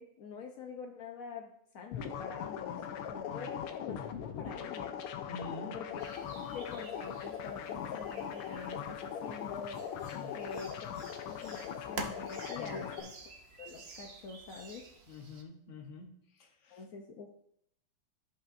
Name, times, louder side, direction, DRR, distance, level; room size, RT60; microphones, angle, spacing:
voice 1, 0.0-5.0 5.7-6.0 6.5-10.0 10.3-10.9 11.3-13.1 13.6-14.9 16.7-17.3, left 4 dB, 65° left, 2 dB, 0.8 m, -46 dB
sound 1, 1.9-13.0, left 8 dB, 90° left, 1.6 m, -40 dB
voice 2, 5.3-5.8 10.1-10.4 12.5-13.0 15.1-16.8, left 3 dB, 45° left, 3 dB, 1.1 m, -47 dB
sound 2, 6.0-15.4, right 4 dB, 65° right, 0.6 m, -49 dB
14.5 x 5.6 x 2.6 m, 0.71 s
omnidirectional pair, 2.4 m